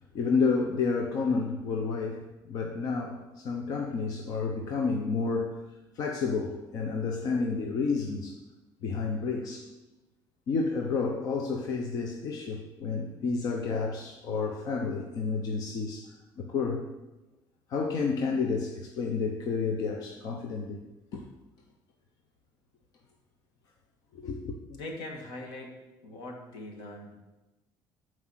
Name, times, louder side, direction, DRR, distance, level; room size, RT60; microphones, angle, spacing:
voice 1, 0.1-5.6 6.0-8.4 8.8-9.6 10.5-16.0 16.4-16.8 17.7-20.8 21.1-21.2 24.1-24.6, left 4 dB, 55° left, 2 dB, 1.0 m, -30 dB
voice 2, 24.7-27.2, left 1 dB, 80° left, 2 dB, 2.0 m, -42 dB
11.5 x 4.8 x 6.4 m, 1.1 s
cardioid pair, 160°, 8 cm